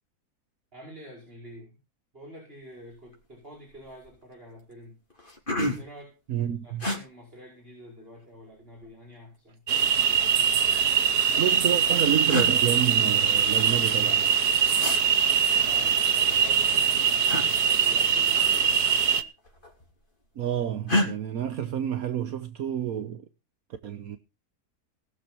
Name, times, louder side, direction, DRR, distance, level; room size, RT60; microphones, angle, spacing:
voice 1, 0.7-1.7 2.1-5.0 5.7-6.1 6.6-9.6 15.6-19.3, equal, 35° right, 5.6 m, -47 dB
sound 1, 3.1-3.3 3.7-4.2 4.7-4.8 5.1-6.0 6.8-7.0 8.2-8.9 10.0-10.9 11.8-11.9 12.3-12.5 14.8-15.0 17.3-17.5 18.8-19.1 19.4-20.0 20.9-21.1, left 1 dB, 30° left, 4.0 m, -29 dB
voice 2, 6.3-6.9 11.4-14.4 20.4-23.2 23.8-24.2, right 9 dB, 70° right, 1.4 m, -29 dB
sound 2, 9.7-19.2, right 7 dB, 85° right, 1.6 m, -22 dB
19.0 x 6.9 x 6.0 m
omnidirectional pair, 1.6 m